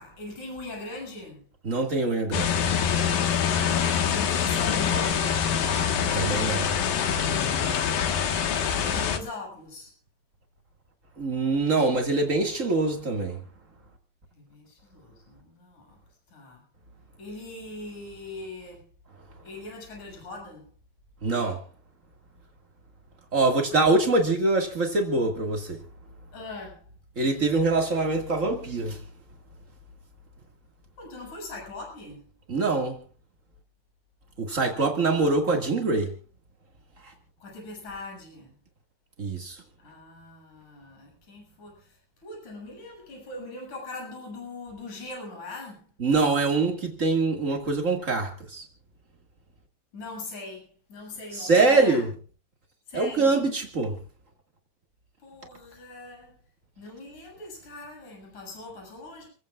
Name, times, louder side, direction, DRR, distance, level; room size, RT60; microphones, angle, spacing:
voice 1, 0.0-1.4 3.6-5.3 8.3-9.9 14.3-16.0 16.3-16.6 17.2-18.8 19.4-20.6 26.3-26.8 31.0-32.2 37.4-38.5 39.8-41.7 42.2-45.8 49.9-52.0 52.9-53.4 55.2-56.4 56.8-59.3, left 2 dB, 40° left, 8.8 m, -41 dB
voice 2, 1.6-2.7 6.1-6.7 11.2-13.4 21.2-21.6 23.3-25.8 27.1-29.0 32.5-33.0 34.4-36.1 37.0-37.1 39.2-39.6 46.0-48.6 51.3-52.1 52.9-54.0, right 3 dB, 85° right, 0.7 m, -24 dB
sound 1, 2.3-9.2, left 7 dB, 60° left, 2.8 m, -25 dB
29.5 x 16.0 x 2.5 m
omnidirectional pair, 5.2 m